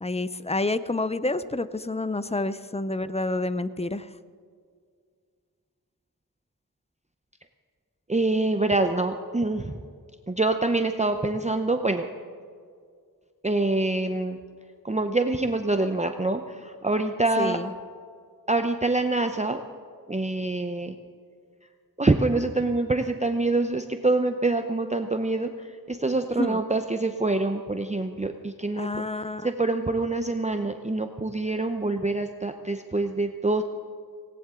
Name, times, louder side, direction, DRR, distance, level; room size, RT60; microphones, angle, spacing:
voice 1, 0.0-4.1 17.4-17.7 26.4-26.6 28.8-29.5, left 2 dB, 15° left, 14 dB, 0.6 m, -28 dB
voice 2, 8.1-9.8 10.3-12.1 13.4-14.4 14.8-17.6 18.5-19.6 20.1-21.0 22.0-29.0 29.4-33.6, right 2 dB, 20° right, 6 dB, 0.7 m, -25 dB
18.5 x 18.0 x 3.7 m, 2.1 s
wide cardioid pair, 55°, 37 cm